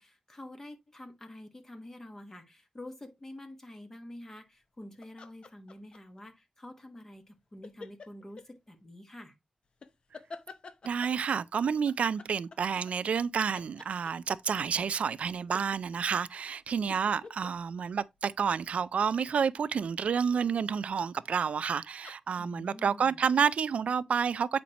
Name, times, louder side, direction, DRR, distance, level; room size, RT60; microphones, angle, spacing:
voice 1, 0.0-9.3 22.4-23.2, left 1 dB, 20° left, 1.4 m, -48 dB
sound 1, 5.0-6.2 7.6-8.5 9.8-11.2 11.9-13.3 13.5-14.5 16.3-19.0 21.4-21.7 22.0-23.1, left 4 dB, 50° left, 0.7 m, -49 dB
voice 2, 10.8-24.6, right 6 dB, 80° right, 0.3 m, -29 dB
8.4 x 5.1 x 2.9 m
wide cardioid pair, 175°, 2 cm